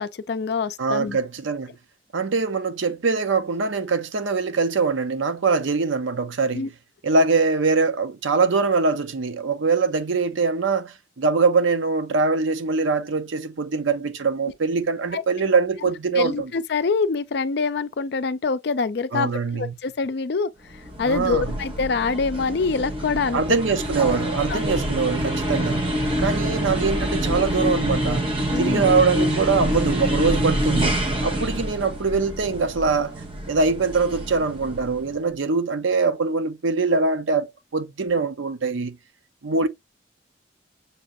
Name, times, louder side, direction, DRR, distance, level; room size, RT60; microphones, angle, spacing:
voice 1, 0.0-1.2 6.5-6.7 15.1-15.2 16.1-23.4 24.5-24.7 28.5-28.8, left 4 dB, 55° left, 0.4 m, -25 dB
voice 2, 0.8-1.7 2.1-6.6 7.0-16.5 19.1-19.7 21.0-21.5 23.3-25.9 26.2-28.3 28.6-33.2 33.5-39.0 39.4-39.7, right 4 dB, 85° right, 0.6 m, -23 dB
sound 1, 20.7-35.2, equal, 25° right, 0.9 m, -26 dB
6.6 x 2.5 x 2.6 m
head